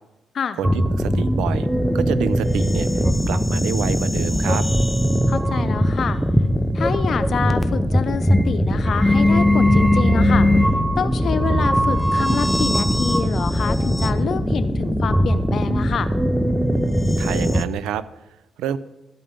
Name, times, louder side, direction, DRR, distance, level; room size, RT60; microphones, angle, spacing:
sound 1, 0.6-17.6, equal, ahead, 0.7 m, -19 dB
voice 1, 0.6-1.7 1.9-4.7 17.2-18.1 18.6-18.8, right 9 dB, 90° right, 16 dB, 0.6 m, -28 dB
voice 2, 5.3-6.2 6.7-10.5 11.0-16.1, left 7 dB, 55° left, 12 dB, 0.8 m, -27 dB
12.5 x 5.2 x 8.9 m, 0.96 s
cardioid pair, 90°, 0 cm